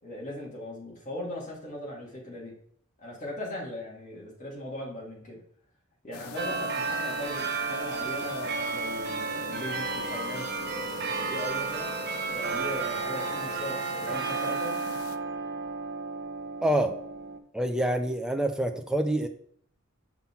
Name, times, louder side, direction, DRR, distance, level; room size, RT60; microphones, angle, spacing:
voice 1, 0.0-2.5 3.0-5.4 6.0-11.9 12.3-14.8, left 1 dB, 35° left, -4 dB, 2.2 m, -39 dB
sound 1, 6.1-15.2, left 7 dB, 80° left, 0.5 m, -44 dB
sound 2, 6.4-17.4, right 4 dB, 50° right, 0.9 m, -32 dB
voice 2, 16.6-16.9 17.5-19.3, right 1 dB, 5° right, 5 dB, 0.5 m, -26 dB
5.7 x 3.7 x 5.9 m, 0.63 s
head